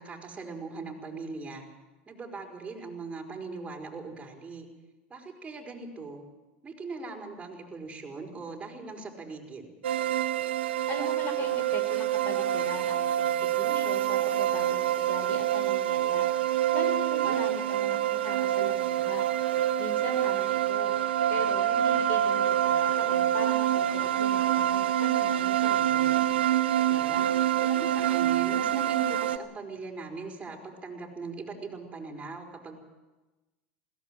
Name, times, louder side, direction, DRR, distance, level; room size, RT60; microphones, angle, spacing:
voice 1, 0.0-1.7 2.1-4.7 5.1-6.2 6.6-9.7 17.1-17.4 26.7-27.3 27.6-32.8, right 3 dB, 20° right, 1 dB, 5.2 m, -40 dB
sound 1, 9.8-29.4, right 11 dB, 90° right, 0.9 m, -26 dB
voice 2, 10.9-16.3 16.7-19.3 19.8-20.9 21.3-26.2, left 4 dB, 40° left, 8 dB, 4.9 m, -40 dB
21.0 x 17.5 x 7.7 m, 1.1 s
supercardioid pair, 105°, 6 cm